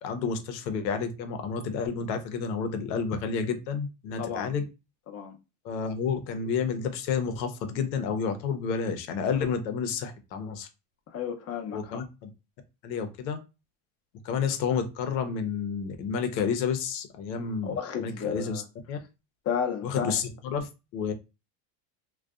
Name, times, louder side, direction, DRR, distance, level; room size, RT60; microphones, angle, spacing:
voice 1, 0.0-4.6 5.6-10.7 11.7-12.3 12.8-13.4 14.2-18.6 18.9-19.0 19.8-21.1, left 6 dB, 90° left, 0.7 m, -30 dB
voice 2, 4.2-4.5 5.1-5.4 11.1-12.0 17.6-18.6 19.5-20.2, left 7 dB, 30° left, 0.5 m, -32 dB
2.5 x 2.2 x 2.3 m
supercardioid pair, 95°, 49 cm